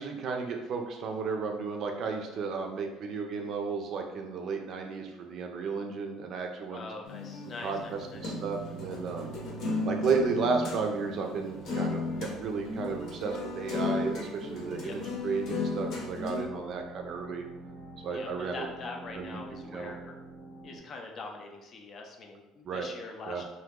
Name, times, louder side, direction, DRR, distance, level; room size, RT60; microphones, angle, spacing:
voice 1, 0.0-6.9 7.6-9.3 9.8-17.4 18.0-18.7 19.2-19.4 19.7-19.9 22.6-22.9 23.3-23.4, right 5 dB, 45° right, 3 dB, 0.5 m, -33 dB
voice 2, 6.7-8.4 14.8-15.0 18.1-20.2 20.6-23.4, left 3 dB, 35° left, 2 dB, 0.5 m, -43 dB
sound 1, 7.0-10.8 11.2-11.3 11.6-12.3 12.6-16.5, left 3 dB, 55° left, 0.8 m, -34 dB
sound 2, 7.7-20.8, right 3 dB, 90° right, 0.6 m, -45 dB
2.9 x 2.7 x 3.6 m, 1.0 s
cardioid pair, 155°, 0 cm